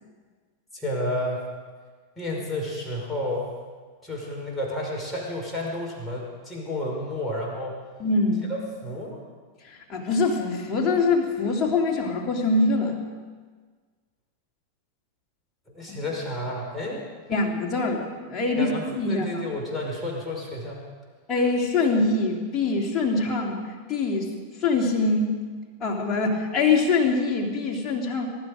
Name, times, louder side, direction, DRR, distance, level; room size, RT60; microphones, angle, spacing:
voice 1, 0.7-1.4 2.2-3.5 4.0-7.8 8.8-9.2 15.7-17.0 18.5-20.8, left 1 dB, 5° left, -3 dB, 5.2 m, -31 dB
voice 2, 8.0-8.5 9.6-13.0 17.3-19.3 21.3-23.6 23.9-24.3 24.6-25.4 25.8-28.3, left 3 dB, 25° left, 0 dB, 2.9 m, -24 dB
22.5 x 12.0 x 5.1 m, 1.5 s
figure-of-eight pair, 90°, 0 cm